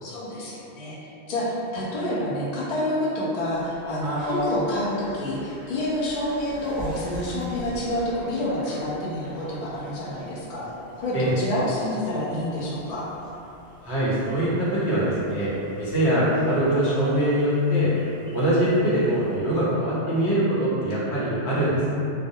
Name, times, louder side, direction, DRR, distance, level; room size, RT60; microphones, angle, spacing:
voice 1, 0.0-10.6 11.0-13.1, left 1 dB, 55° left, -7 dB, 0.5 m, -28 dB
sound 1, 3.5-19.4, left 1 dB, 5° right, 0.7 m, -40 dB
voice 2, 13.8-17.9 18.3-21.9, right 1 dB, 75° left, -9 dB, 1.0 m, -23 dB
2.3 x 2.0 x 2.6 m, 2.7 s
omnidirectional pair, 1.1 m